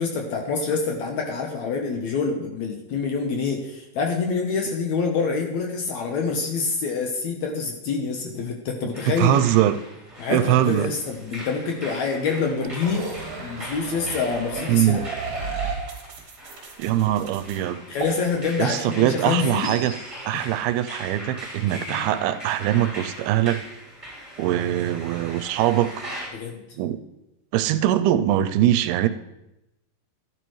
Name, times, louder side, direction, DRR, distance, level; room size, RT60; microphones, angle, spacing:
voice 1, 0.0-9.3 10.2-15.0 17.9-19.7 20.3-20.5 21.9-22.1 26.3-26.6, left 5 dB, 75° left, 2 dB, 1.7 m, -26 dB
voice 2, 8.8-9.8 10.3-10.9 14.7-15.0 16.8-17.8 18.6-20.0 20.2-23.6 24.4-26.0 26.8-27.0 27.5-29.1, right 12 dB, 85° right, 11 dB, 2.5 m, -22 dB
sound 1, 8.9-26.3, equal, 10° right, 2.6 m, -40 dB
sound 2, 12.6-17.6 18.0-18.1, right 5 dB, 50° right, 2.1 m, -33 dB
12.5 x 11.0 x 3.1 m, 0.92 s
omnidirectional pair, 4.5 m